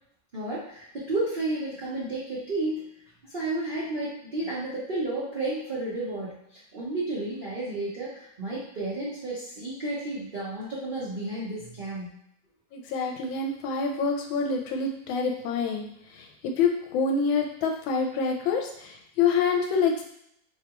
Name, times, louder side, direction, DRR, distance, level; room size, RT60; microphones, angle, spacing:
voice 1, 0.3-2.9 3.2-12.2, right 2 dB, 75° right, -8 dB, 0.4 m, -32 dB
voice 2, 12.7-15.9 16.6-20.1, left 5 dB, 80° left, 3 dB, 1.3 m, -26 dB
3.3 x 2.3 x 2.9 m, 0.72 s
omnidirectional pair, 2.2 m